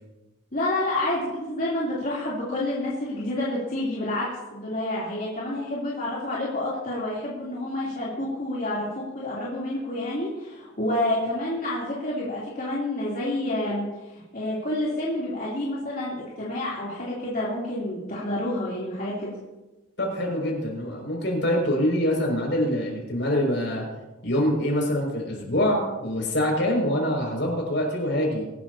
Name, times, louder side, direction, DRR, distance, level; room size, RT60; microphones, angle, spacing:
voice 1, 0.5-19.3, left 1 dB, 45° left, -7 dB, 3.3 m, -29 dB
voice 2, 20.0-23.8 24.2-28.4, left 1 dB, 65° left, -1 dB, 6.1 m, -25 dB
24.0 x 12.5 x 2.9 m, 1.1 s
head